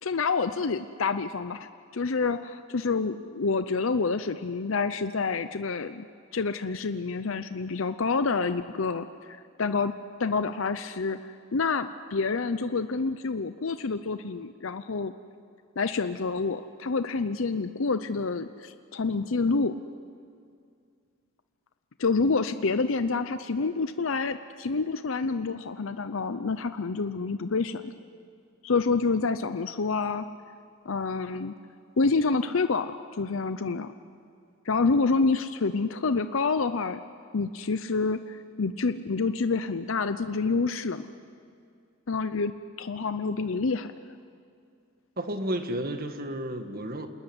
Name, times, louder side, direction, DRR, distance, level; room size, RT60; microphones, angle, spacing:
voice 1, 0.0-6.1 6.3-9.9 10.2-11.2 11.5-15.1 15.8-19.7 22.0-27.9 28.6-30.2 30.9-31.5 32.0-33.9 34.7-37.0 37.3-41.1 42.1-42.5 42.8-43.9, left 4 dB, 70° left, 10 dB, 0.7 m, -28 dB
voice 2, 45.2-47.1, right 1 dB, 45° right, 7 dB, 1.7 m, -32 dB
27.0 x 20.0 x 9.9 m, 2.4 s
head